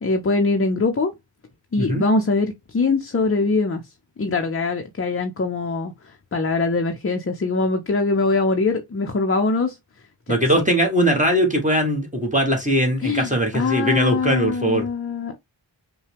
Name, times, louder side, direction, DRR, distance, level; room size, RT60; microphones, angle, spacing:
voice 1, 0.0-1.1 1.7-3.8 4.2-9.8 10.3-10.6 13.0-15.4, left 3 dB, 30° left, 0.5 m, -23 dB
voice 2, 10.3-14.8, equal, 15° right, 1.1 m, -20 dB
5.5 x 2.2 x 3.4 m
wide cardioid pair, 95°, 46 cm